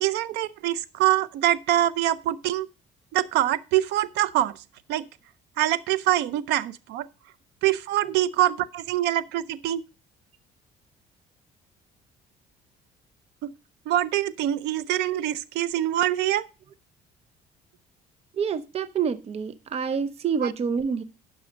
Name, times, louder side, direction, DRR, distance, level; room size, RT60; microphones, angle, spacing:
voice 1, 0.0-2.7 3.1-4.6 4.9-5.0 5.6-7.1 7.6-9.8 13.4-13.5 13.9-16.4 20.4-20.5, right 13 dB, 85° right, 0.6 m, -24 dB
voice 2, 18.3-21.0, right 6 dB, 35° right, 0.7 m, -27 dB
11.0 x 6.3 x 5.1 m
cardioid pair, 110°, 17 cm